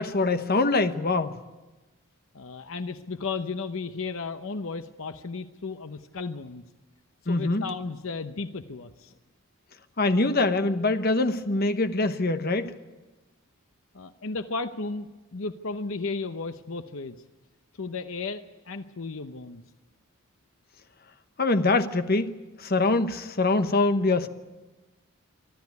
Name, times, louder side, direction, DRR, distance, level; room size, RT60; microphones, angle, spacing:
voice 1, 0.0-1.4 7.3-7.6 10.0-12.7 21.4-22.3 22.6-24.3, left 3 dB, 45° left, 9 dB, 1.0 m, -24 dB
voice 2, 2.3-6.6 7.2-9.1 13.9-17.2 17.7-19.6, left 4 dB, 70° left, 10 dB, 0.8 m, -34 dB
24.5 x 13.0 x 9.5 m, 1.2 s
head